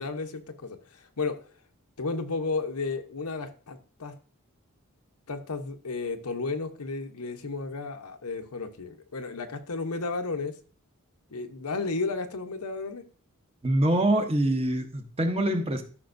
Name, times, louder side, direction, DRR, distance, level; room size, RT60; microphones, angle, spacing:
voice 1, 0.0-1.4 2.0-4.1 5.3-10.6 11.3-13.1, left 3 dB, 90° left, 6 dB, 1.0 m, -33 dB
voice 2, 13.6-15.8, right 1 dB, 25° right, 5 dB, 1.0 m, -24 dB
13.5 x 5.8 x 2.6 m, 0.40 s
head